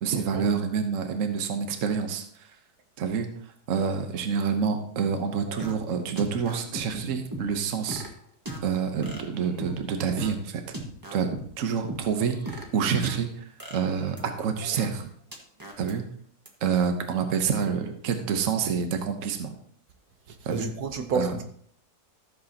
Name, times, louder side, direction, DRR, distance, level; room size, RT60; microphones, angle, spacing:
voice 1, 0.0-2.3 3.0-3.3 3.7-8.0 8.6-10.8 11.1-15.1 15.8-16.0 16.6-19.5 20.4-20.7 21.1-21.3, right 6 dB, 55° right, 6 dB, 1.3 m, -27 dB
sound 1, 5.1-5.7 6.2-6.8 7.3-8.1 8.5-8.6 9.0-9.8 10.0-10.3 10.7-11.4 11.9-13.2 13.6-14.9 15.3-15.9 16.5-16.6, right 1 dB, 15° right, 1.4 m, -37 dB
voice 2, 20.5-21.4, right 4 dB, 75° right, 5 dB, 1.5 m, -29 dB
14.5 x 7.4 x 2.9 m, 0.62 s
omnidirectional pair, 1.7 m